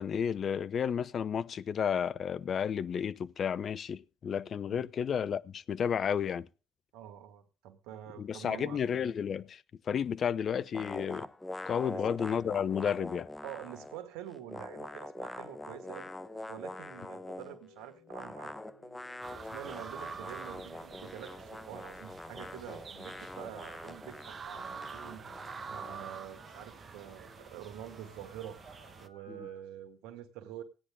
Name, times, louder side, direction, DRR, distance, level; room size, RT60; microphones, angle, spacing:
voice 1, 0.0-6.5 8.2-11.3 11.6-13.3 29.3-29.5, left 7 dB, 50° left, 0.7 m, -32 dB
voice 2, 6.9-8.8 11.8-12.0 13.4-16.1 16.5-18.6 19.3-25.2 25.7-28.6 29.0-30.6, right 11 dB, 75° right, 1.8 m, -46 dB
sound 1, 10.7-14.0 14.3-17.6 18.1-26.1, left 2 dB, 15° left, 1.0 m, -44 dB
sound 2, 14.6-29.6, left 3 dB, 90° left, 4.5 m, -60 dB
sound 3, 19.2-29.1, right 6 dB, 40° right, 1.2 m, -47 dB
17.0 x 10.0 x 3.7 m
hypercardioid pair, 55°, 0 cm